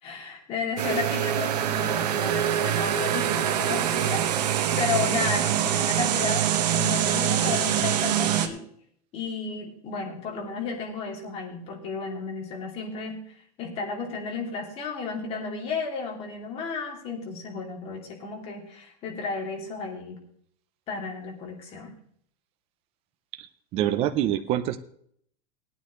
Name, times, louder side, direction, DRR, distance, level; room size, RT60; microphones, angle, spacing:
voice 1, 0.0-6.5 6.7-8.7 9.1-13.2 13.6-20.2 20.9-21.9, left 5 dB, 30° left, 0 dB, 2.9 m, -33 dB
sound 1, 0.8-8.5, right 10 dB, 90° right, 1.4 m, -24 dB
voice 2, 23.7-24.8, right 11 dB, 30° right, 9 dB, 0.7 m, -25 dB
18.0 x 9.4 x 3.2 m, 0.65 s
supercardioid pair, 155°, 20 cm